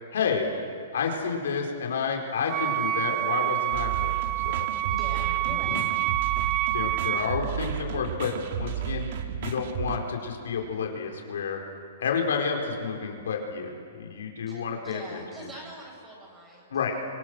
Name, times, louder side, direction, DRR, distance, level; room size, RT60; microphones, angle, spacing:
voice 1, 0.1-0.5 0.9-4.1 4.4-4.7 5.7-5.8 6.7-9.1 9.4-11.6 12.0-15.2 16.7-17.0, left 5 dB, 80° left, 1 dB, 4.5 m, -30 dB
Wind instrument woodwind instrument, 2.5-7.4, right 16 dB, 30° right, 0.9 m, -27 dB
sound 1, 3.7-10.0, right 9 dB, 60° right, 2.0 m, -33 dB
voice 2, 4.8-5.8 14.5-17.1, right 1 dB, 15° right, -2 dB, 7.5 m, -43 dB
27.5 x 24.5 x 6.4 m, 2.3 s
hypercardioid pair, 145°, 0 cm